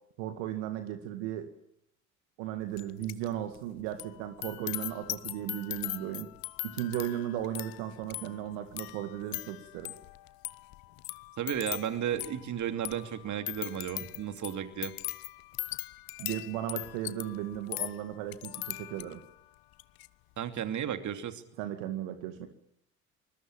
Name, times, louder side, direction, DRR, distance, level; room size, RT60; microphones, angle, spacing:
voice 1, 0.2-1.5 2.4-6.3 6.6-9.9 16.2-19.2 21.6-22.5, right 12 dB, 70° right, 8 dB, 2.2 m, -36 dB
sound 1, 2.8-3.3 3.5-19.3 19.7-20.1, left 20 dB, 60° left, 1.2 m, -40 dB
voice 2, 11.4-14.9 20.4-21.4, right 9 dB, 45° right, 9 dB, 2.8 m, -34 dB
24.5 x 21.0 x 8.9 m, 0.73 s
hypercardioid pair, 60°, 41 cm